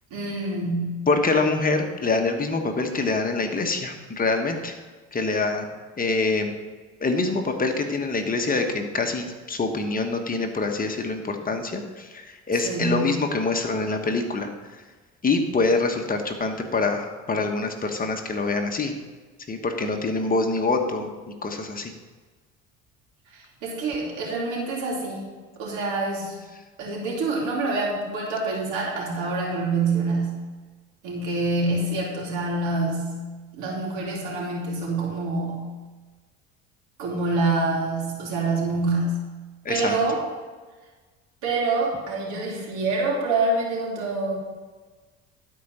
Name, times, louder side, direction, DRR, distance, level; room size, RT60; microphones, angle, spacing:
voice 1, 0.1-1.0 12.6-13.1 23.3-25.3 25.6-26.3 26.8-30.4 31.0-33.2 33.5-35.7 37.0-39.1 39.7-40.2 41.4-44.4, right 3 dB, 80° right, -3 dB, 3.2 m, -26 dB
voice 2, 1.1-4.8 5.1-5.7 6.0-6.5 7.0-14.5 15.2-18.9 19.5-21.1 21.4-21.9 39.6-40.0, left 3 dB, 30° left, 4 dB, 1.3 m, -25 dB
11.5 x 4.9 x 5.5 m, 1.3 s
supercardioid pair, 85°, 30 cm